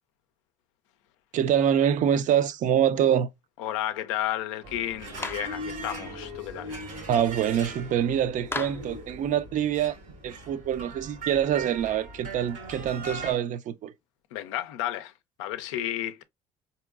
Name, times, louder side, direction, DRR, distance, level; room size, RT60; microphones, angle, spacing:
voice 1, 1.3-3.3 7.1-10.0 10.2-13.9, right 9 dB, 55° right, 0.4 m, -25 dB
voice 2, 3.6-6.8 14.3-15.1 15.4-16.2, left 12 dB, 85° left, 0.4 m, -32 dB
sound 1, 4.6-13.3, right 2 dB, 90° right, 1.5 m, -40 dB
Clapping, 5.2-5.5 8.5-8.9, left 3 dB, 15° left, 0.4 m, -34 dB
3.8 x 2.7 x 2.3 m
hypercardioid pair, 65°, 15 cm